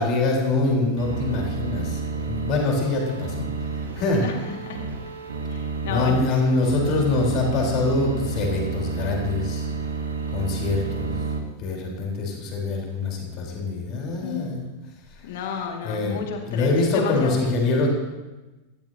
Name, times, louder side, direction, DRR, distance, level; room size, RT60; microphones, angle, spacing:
voice 1, 0.0-3.5 4.0-4.2 5.9-9.7 10.3-11.1 11.6-14.6 15.8-16.2 16.5-17.9, left 3 dB, 40° left, -1 dB, 4.0 m, -24 dB
sound 1, 1.0-11.4, right 4 dB, 70° right, 1.4 m, -30 dB
voice 2, 4.2-4.8 5.5-6.2 14.2-14.5 15.2-17.5, left 6 dB, 55° left, 3 dB, 2.1 m, -32 dB
17.5 x 14.0 x 2.9 m, 1.1 s
figure-of-eight pair, 90°, 0 cm